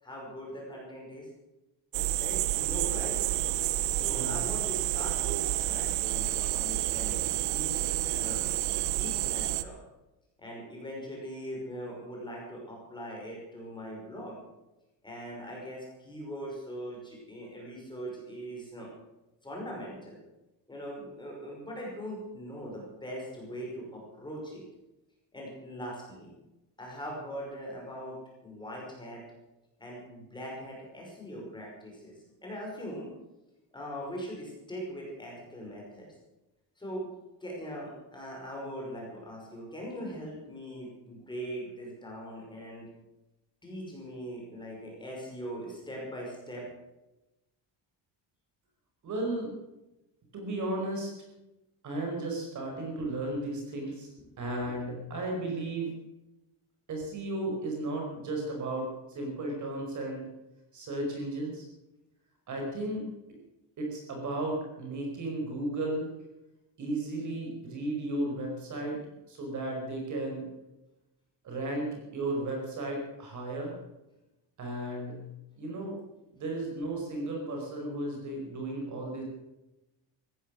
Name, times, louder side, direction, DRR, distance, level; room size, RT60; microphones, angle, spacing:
voice 1, 0.0-1.3 2.2-3.2 3.9-8.4 8.9-9.8 10.4-14.4 15.0-18.9 19.4-20.2 20.7-24.6 25.3-26.3 26.8-29.2 29.8-33.1 33.7-36.1 36.8-37.1 37.4-42.9 43.6-46.7, equal, 10° left, -2 dB, 5.7 m, -41 dB
sound 1, 1.9-9.6, right 15 dB, 80° right, 1.1 m, -29 dB
voice 2, 4.0-4.4 49.0-49.5 50.3-51.1 51.8-54.1 54.4-55.9 56.9-60.3 60.7-61.6 62.5-63.1 63.8-66.1 66.8-69.0 69.3-70.4 71.4-73.7 74.6-75.2 75.6-76.0 76.3-79.2, right 2 dB, 40° right, 1 dB, 5.0 m, -34 dB
16.0 x 14.0 x 6.3 m, 0.96 s
cardioid pair, 180°, 47 cm